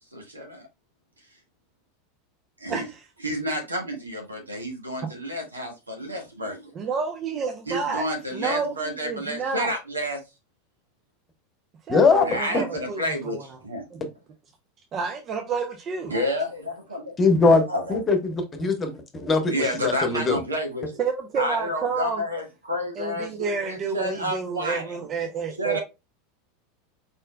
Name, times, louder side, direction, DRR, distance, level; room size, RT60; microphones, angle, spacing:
voice 1, 0.1-0.6 2.6-2.8 3.2-6.7 7.7-10.2 12.2-13.8 16.0-17.1 17.7-18.0 19.5-21.0 21.4-25.0 25.6-25.8, equal, 80° right, 1.7 m, -30 dB
voice 2, 2.7-3.0 6.7-8.1 8.3-9.7 11.9-13.6 13.9-14.0 14.9-16.1 21.0-22.2 23.0-25.8, right 5 dB, 35° right, 0.7 m, -30 dB
voice 3, 11.9-12.2 17.2-19.5 19.8-20.4, left 4 dB, 20° left, 1.1 m, -21 dB
5.0 x 4.4 x 2.2 m
figure-of-eight pair, 80°, 0 cm